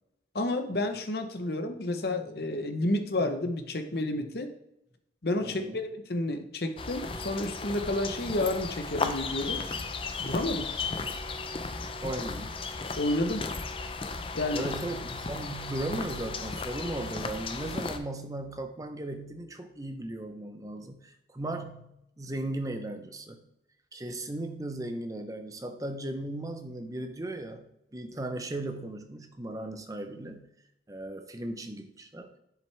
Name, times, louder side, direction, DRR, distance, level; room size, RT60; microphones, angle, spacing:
voice 1, 0.3-4.5 5.2-9.6 10.2-10.7 13.0-13.5 14.4-14.7, left 1 dB, 55° left, 6 dB, 0.9 m, -30 dB
voice 2, 5.4-5.8 12.0-12.5 14.5-23.4 23.9-30.5 30.9-32.3, right 1 dB, 20° right, 7 dB, 0.7 m, -37 dB
sound 1, 6.8-18.0, left 4 dB, 30° left, 0.5 m, -35 dB
7.5 x 7.5 x 3.4 m, 0.81 s
head